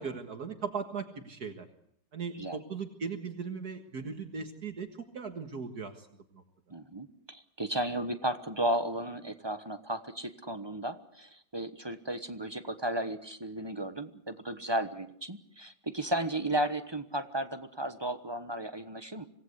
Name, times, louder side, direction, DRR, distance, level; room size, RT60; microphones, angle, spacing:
voice 1, 0.0-1.7 2.1-4.9 5.1-6.1 6.3-6.4, right 5 dB, 60° right, 6 dB, 2.1 m, -38 dB
voice 2, 6.7-19.3, right 1 dB, 15° right, 9 dB, 1.1 m, -34 dB
26.0 x 18.0 x 8.2 m, 0.68 s
omnidirectional pair, 1.9 m